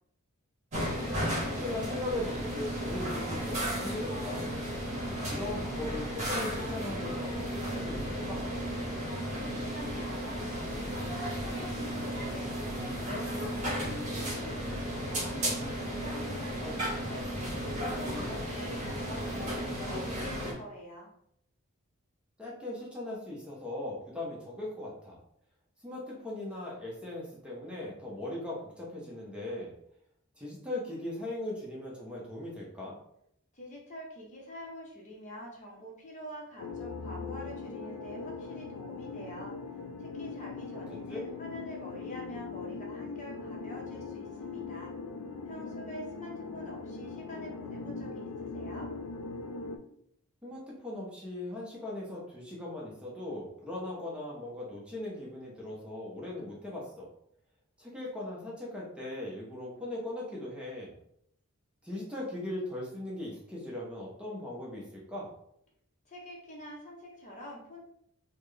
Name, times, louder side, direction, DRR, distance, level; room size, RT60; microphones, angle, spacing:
sound 1, 0.7-20.5, equal, 30° right, 1.4 m, -34 dB
voice 1, 1.2-4.6 5.3-8.4 16.6-16.7 22.4-25.2 25.8-29.7 30.4-33.0 41.1-41.2 50.4-57.1 57.8-60.9 61.8-65.3, left 1 dB, 5° right, -4 dB, 0.7 m, -39 dB
voice 2, 9.0-15.4 15.8-21.1 33.5-39.6 40.0-44.9 45.5-48.9 66.1-67.8, equal, 35° left, -2 dB, 0.8 m, -46 dB
sound 2, 36.6-49.8, left 4 dB, 85° left, 0.4 m, -40 dB
4.0 x 2.1 x 3.2 m, 0.71 s
head